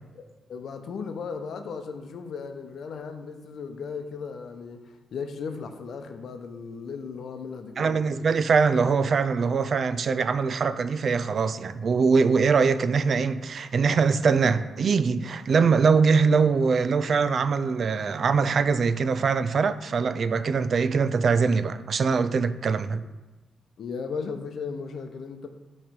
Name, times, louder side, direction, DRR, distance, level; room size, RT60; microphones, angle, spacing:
voice 1, 0.5-4.8 5.1-8.0 23.8-25.5, left 5 dB, 70° left, 0.7 m, -36 dB
voice 2, 7.8-23.0, right 5 dB, 55° right, 0.3 m, -23 dB
8.7 x 3.2 x 5.2 m
cardioid pair, 90°, 0 cm